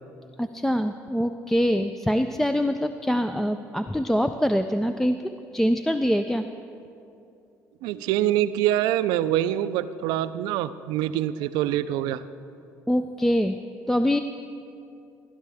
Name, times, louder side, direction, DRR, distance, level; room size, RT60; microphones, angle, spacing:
voice 1, 0.4-6.4 12.9-13.6 13.9-14.2, equal, 5° left, 7 dB, 0.3 m, -24 dB
voice 2, 7.8-12.2, right 12 dB, 80° right, 13 dB, 0.4 m, -25 dB
15.0 x 11.0 x 3.5 m, 2.6 s
supercardioid pair, 80°, 7 cm